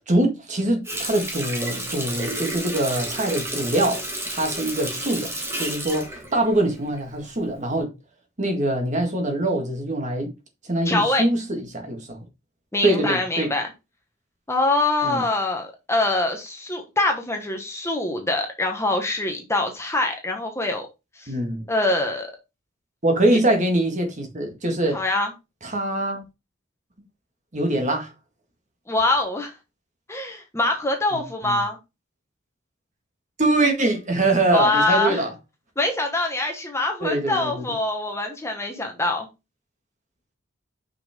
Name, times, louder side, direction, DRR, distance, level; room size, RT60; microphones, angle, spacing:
voice 1, 0.0-4.0 4.3-5.3 5.6-7.9 8.4-10.3 10.6-12.2 12.8-13.5 15.0-15.2 21.3-21.7 23.0-25.0 25.6-26.2 27.5-28.1 31.1-31.2 31.5-31.6 33.4-35.3 37.0-37.6, right 1 dB, 35° right, 1.8 m, -23 dB
Water tap faucet, 0.8-7.2 7.6-7.8, right 1 dB, 15° right, 1.6 m, -31 dB
voice 2, 10.8-11.2 12.7-13.7 14.5-20.9 21.2-21.3 21.7-22.3 23.3-23.4 24.9-25.3 28.9-29.5 30.1-31.8 34.5-35.2 35.8-39.3, left 2 dB, 15° left, 1.3 m, -24 dB
6.0 x 5.8 x 3.6 m
head